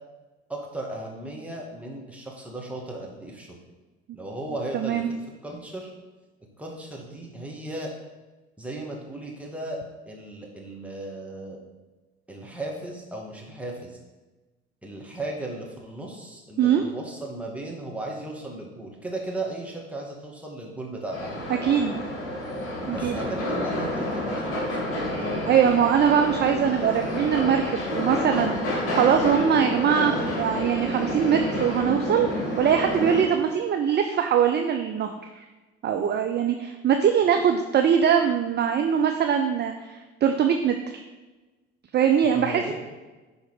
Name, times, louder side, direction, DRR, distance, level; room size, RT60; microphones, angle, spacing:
voice 1, 0.5-3.6 4.1-5.0 5.4-5.9 6.6-7.9 8.6-9.8 10.1-11.6 12.3-14.0 14.8-21.4 22.9-25.4 42.3-42.7, right 2 dB, 5° right, -2 dB, 2.2 m, -36 dB
voice 2, 4.7-5.1 16.6-16.8 21.6-22.0 22.9-23.2 25.5-32.3 32.6-35.4 35.8-40.8 41.9-42.7, right 8 dB, 30° right, 5 dB, 0.6 m, -22 dB
sound 1, 21.1-33.2, left 1 dB, 40° left, 2.5 m, -29 dB
10.5 x 4.0 x 5.1 m, 1.2 s
figure-of-eight pair, 55°, 34 cm